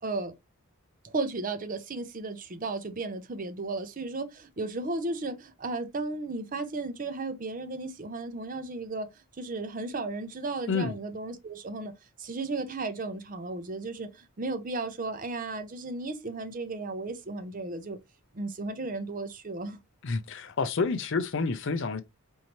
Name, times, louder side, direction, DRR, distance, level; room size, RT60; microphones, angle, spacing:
voice 1, 0.0-0.3 1.0-9.1 9.4-11.9 12.2-18.0 18.3-19.8, right 3 dB, 40° right, 0.6 m, -34 dB
voice 2, 20.0-22.0, left 4 dB, 55° left, 0.5 m, -29 dB
4.5 x 2.7 x 3.0 m
head